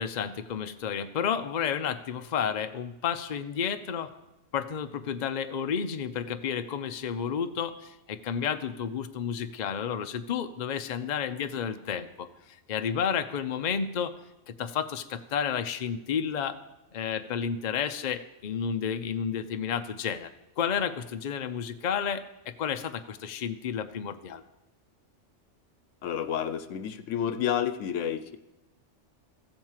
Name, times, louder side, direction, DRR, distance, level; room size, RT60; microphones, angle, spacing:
voice 1, 0.0-4.1 4.5-12.3 12.7-14.1 14.5-16.6 16.9-20.3 20.6-24.4, left 7 dB, 45° left, 8 dB, 0.7 m, -31 dB
voice 2, 26.0-28.4, left 9 dB, 80° left, 12 dB, 1.1 m, -30 dB
14.0 x 7.9 x 7.3 m, 0.97 s
omnidirectional pair, 1.2 m